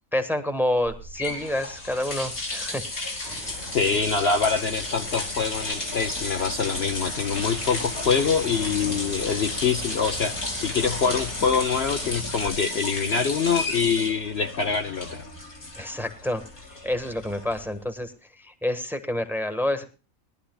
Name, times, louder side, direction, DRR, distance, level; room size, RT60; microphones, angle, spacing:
voice 1, 0.1-4.0 15.8-19.8, left 1 dB, ahead, 8 dB, 1.4 m, -29 dB
sound 1, 0.8-17.9, left 2 dB, 90° left, 3.7 m, -33 dB
sound 2, 3.2-12.2, right 1 dB, 50° right, 1.8 m, -40 dB
voice 2, 3.5-15.2, left 5 dB, 50° left, 5 dB, 1.0 m, -25 dB
21.5 x 11.5 x 2.3 m, 0.32 s
omnidirectional pair, 1.4 m